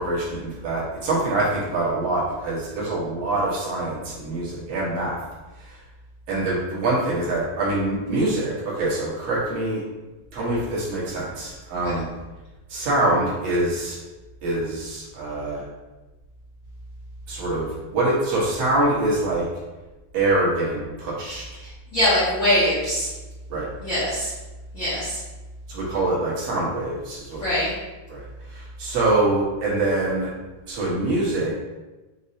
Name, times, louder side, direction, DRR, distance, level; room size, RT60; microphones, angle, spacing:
voice 1, 0.0-5.2 5.7-5.8 6.3-9.8 10.3-12.1 12.7-14.0 14.4-15.6 17.3-19.5 20.1-21.4 23.5-23.7 25.7-27.4 28.1-28.2 28.5-30.3 30.7-31.5, right 2 dB, 55° right, -7 dB, 2.2 m, -24 dB
voice 2, 21.9-23.1 23.8-24.3 24.7-25.2 27.4-27.7, left 1 dB, 70° left, -10 dB, 1.1 m, -22 dB
6.3 x 2.9 x 2.8 m, 1.1 s
omnidirectional pair, 3.9 m